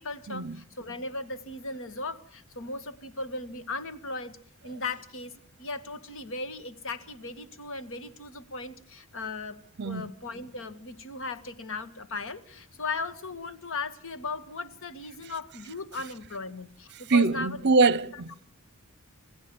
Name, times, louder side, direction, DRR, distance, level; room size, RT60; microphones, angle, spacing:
voice 1, 0.0-4.4 4.6-17.6 18.1-18.2, left 3 dB, 60° left, 1.9 m, -37 dB
voice 2, 17.1-18.4, right 3 dB, 50° right, 0.9 m, -23 dB
27.0 x 16.5 x 7.2 m
head